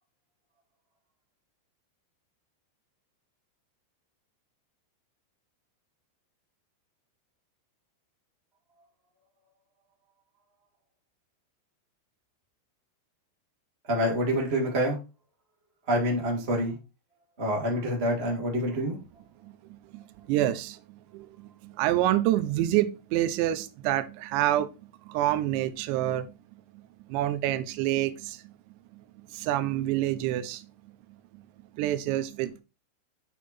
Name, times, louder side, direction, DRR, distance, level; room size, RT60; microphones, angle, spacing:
voice 1, 13.9-15.0 15.9-16.7 17.4-19.0, equal, 50° right, 0.7 m, -27 dB
voice 2, 19.9-20.8 21.1-24.7 25.1-26.3 27.1-28.4 29.3-30.7 31.8-32.6, right 13 dB, 90° right, 2.5 m, -27 dB
9.1 x 4.7 x 4.2 m
omnidirectional pair, 5.9 m